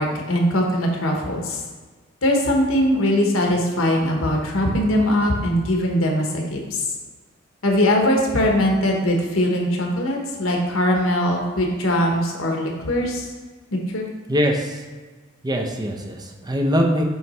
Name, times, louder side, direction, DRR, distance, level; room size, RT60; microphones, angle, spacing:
voice 1, 0.0-1.6 2.2-6.8 7.6-13.2 13.9-14.1, left 1 dB, 80° left, 0 dB, 1.1 m, -21 dB
voice 2, 14.3-14.8 15.4-17.0, equal, 20° right, 2 dB, 0.6 m, -22 dB
7.8 x 3.1 x 4.2 m, 1.3 s
head